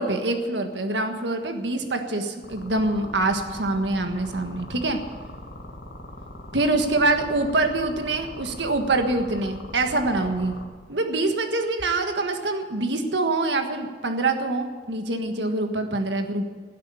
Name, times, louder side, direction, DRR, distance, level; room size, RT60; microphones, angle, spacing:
voice 1, 0.0-5.0 6.5-10.6 10.9-16.5, right 2 dB, 80° right, 5 dB, 1.5 m, -25 dB
sound 1, 2.4-10.6, left 1 dB, 80° left, 2.3 m, -41 dB
16.5 x 8.4 x 8.7 m, 1.5 s
head